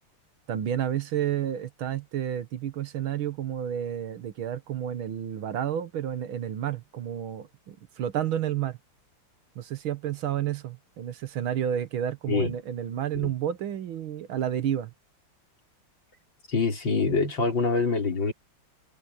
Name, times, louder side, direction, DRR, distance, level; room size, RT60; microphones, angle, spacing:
voice 1, 0.5-8.8 9.6-14.9, right 10 dB, 75° right, 1.9 m, -30 dB
voice 2, 16.5-18.3, left 4 dB, 65° left, 5.1 m, -25 dB
omnidirectional pair, 2.3 m